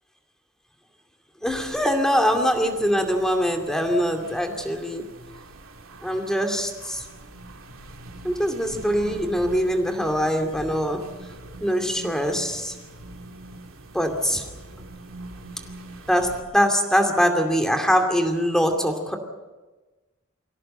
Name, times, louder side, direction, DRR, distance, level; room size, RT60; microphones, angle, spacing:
voice 1, 1.4-5.0 6.0-7.0 8.2-11.0 11.6-12.7 13.9-14.4 16.1-19.2, equal, 5° left, 4 dB, 2.5 m, -23 dB
sound 1, 1.5-16.4, right 2 dB, 75° right, 2.7 m, -43 dB
25.0 x 16.5 x 7.9 m, 1.2 s
head